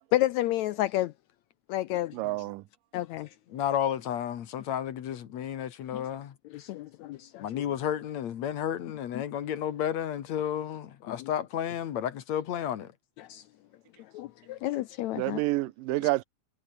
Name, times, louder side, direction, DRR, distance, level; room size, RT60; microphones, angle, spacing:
voice 1, 0.1-1.1 1.7-2.2 2.9-3.3 5.9-6.0 6.5-7.6 9.1-9.2 11.1-11.3 13.2-13.4 14.1-15.4, left 15 dB, 80° left, 1.7 m, -30 dB
voice 2, 2.1-2.6 15.1-16.2, right 19 dB, 90° right, 2.4 m, -28 dB
voice 3, 3.5-6.4 7.4-12.9, left 10 dB, 60° left, 2.5 m, -32 dB
omnidirectional pair, 3.7 m